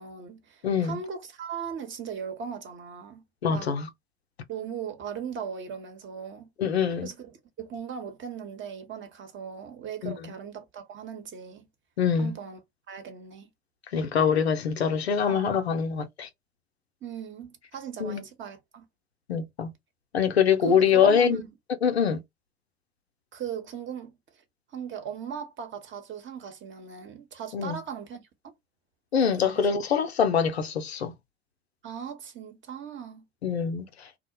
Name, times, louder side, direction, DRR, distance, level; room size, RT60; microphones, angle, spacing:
voice 1, 0.0-3.2 3.5-3.7 4.5-6.5 7.0-11.7 12.2-12.6 12.9-13.5 15.3-15.6 17.0-18.9 20.6-21.5 23.3-24.2 24.7-28.2 29.3-29.7 31.8-33.3, right 7 dB, 40° right, 0.9 m, -38 dB
voice 2, 0.6-1.0 3.4-3.9 6.6-7.1 10.0-10.3 12.0-12.3 13.9-16.3 18.0-18.2 19.3-19.7 20.1-21.4 21.8-22.2 27.5-27.8 29.1-31.1 33.4-34.1, left 7 dB, 90° left, 0.5 m, -24 dB
2.4 x 2.1 x 2.8 m
figure-of-eight pair, 65°, 31 cm